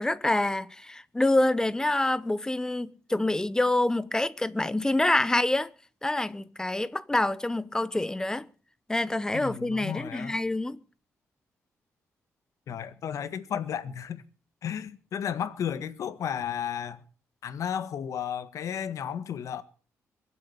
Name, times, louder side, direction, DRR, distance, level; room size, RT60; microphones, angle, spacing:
voice 1, 0.0-5.7 6.0-8.5 8.9-10.8, left 2 dB, 10° left, 0.8 m, -26 dB
voice 2, 9.3-10.4 12.7-14.2 14.6-17.0 17.4-19.6, left 8 dB, 70° left, 1.6 m, -33 dB
23.0 x 7.9 x 7.0 m
cardioid pair, 100°, 6 cm